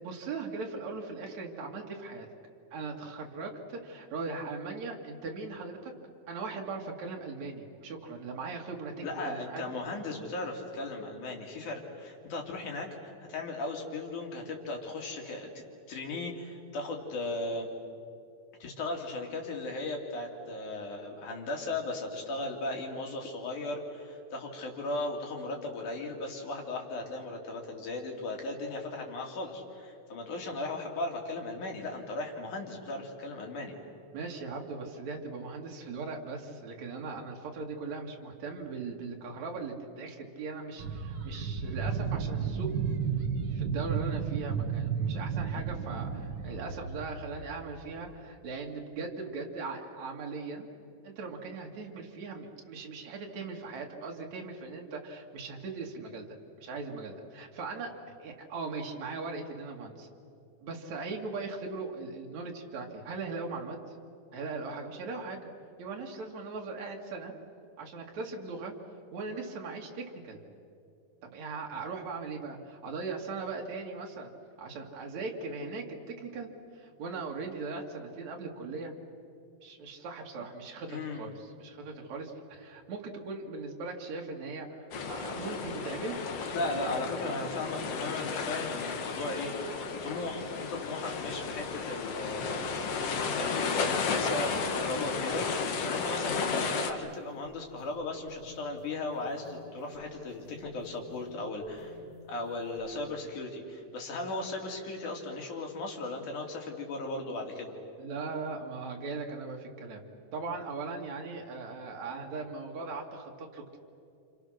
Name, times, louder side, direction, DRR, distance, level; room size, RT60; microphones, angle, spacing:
voice 1, 0.0-2.3 2.7-5.9 6.3-9.6 34.1-42.7 43.5-50.7 51.0-57.9 58.2-60.1 60.6-63.8 64.3-65.5 65.8-67.3 67.8-68.7 69.1-70.4 71.2-74.3 74.6-76.5 76.7-78.9 79.6-86.2 86.7-87.0 108.0-110.0 110.3-113.8, right 4 dB, 65° right, 0 dB, 3.4 m, -39 dB
voice 2, 9.0-15.5 15.9-17.7 18.6-33.8 80.9-81.2 86.5-92.7 93.3-102.0 102.3-107.7, left 2 dB, 85° left, 1 dB, 4.3 m, -37 dB
sound 1, 40.8-47.6 48.1-48.2, right 6 dB, 50° right, 1.5 m, -33 dB
sound 2, 84.9-96.9, left 5 dB, 60° left, 2.4 m, -33 dB
sound 3, 92.4-103.1, left 3 dB, 20° left, 7.0 m, -54 dB
29.5 x 27.0 x 6.5 m, 2.6 s
omnidirectional pair, 3.4 m